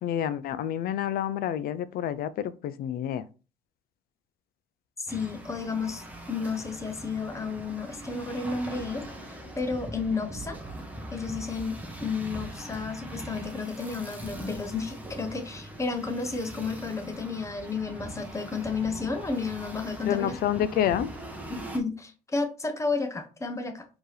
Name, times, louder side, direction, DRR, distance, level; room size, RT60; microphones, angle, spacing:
voice 1, 0.0-3.2 20.0-21.1, left 10 dB, 60° left, 0.4 m, -28 dB
voice 2, 5.0-10.6 11.1-20.3 21.5-23.9, left 4 dB, 15° left, 0.8 m, -32 dB
sound 1, 5.1-21.8, right 1 dB, 10° right, 1.0 m, -41 dB
4.4 x 2.9 x 3.3 m
cardioid pair, 110°, 17 cm